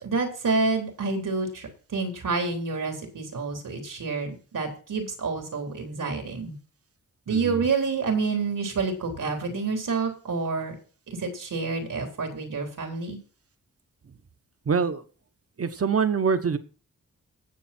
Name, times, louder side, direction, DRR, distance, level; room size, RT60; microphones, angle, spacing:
voice 1, 0.0-6.5 7.3-10.7 11.1-13.2, right 4 dB, 80° right, 3 dB, 3.9 m, -28 dB
voice 2, 7.3-7.7 14.7-15.0 15.6-16.6, right 5 dB, 45° right, 10 dB, 1.1 m, -24 dB
19.0 x 7.3 x 4.4 m, 0.39 s
wide cardioid pair, 120°, 31 cm